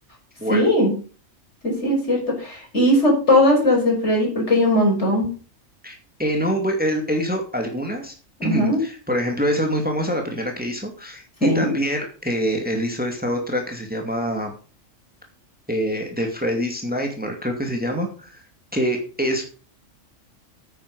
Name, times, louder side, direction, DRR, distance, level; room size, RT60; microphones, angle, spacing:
voice 1, 0.5-0.9 1.6-5.3 8.4-8.8 11.4-11.7, left 1 dB, 60° left, 0 dB, 6.2 m, -19 dB
voice 2, 5.8-8.1 8.4-14.5 15.7-18.4 18.7-19.4, equal, 5° right, 3 dB, 2.5 m, -25 dB
9.5 x 9.3 x 6.6 m, 0.38 s
omnidirectional pair, 1.4 m